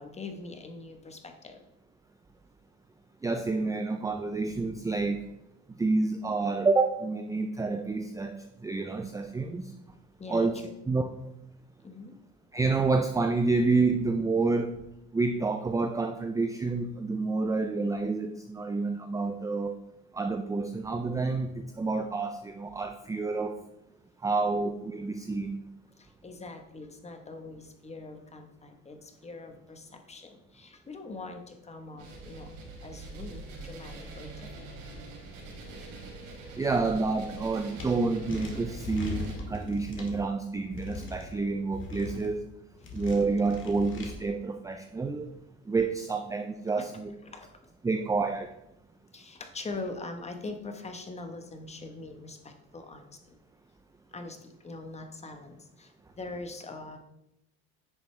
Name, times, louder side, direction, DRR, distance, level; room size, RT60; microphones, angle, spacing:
voice 1, 0.0-1.6 10.2-10.7 11.8-12.2 26.0-32.5 32.8-34.7 42.8-42.9 46.7-46.9 47.2-47.5 49.1-53.4 54.1-57.0, left 3 dB, 20° left, 6 dB, 1.2 m, -43 dB
voice 2, 3.2-5.2 5.8-9.7 10.3-10.6 10.9-11.1 12.5-14.7 15.1-19.8 20.1-23.6 24.2-25.6 36.6-42.4 42.9-45.3 45.7-47.1 47.8-48.5, right 3 dB, 10° right, 6 dB, 0.5 m, -28 dB
sound 1, 32.0-39.3, right 2 dB, 60° right, 3.5 m, -44 dB
sound 2, 37.8-37.9 38.3-40.2 40.7-41.2 41.7-42.3 42.8-44.1, left 3 dB, 35° left, 2.1 m, -39 dB
10.5 x 6.8 x 3.3 m, 0.85 s
supercardioid pair, 110°, 35 cm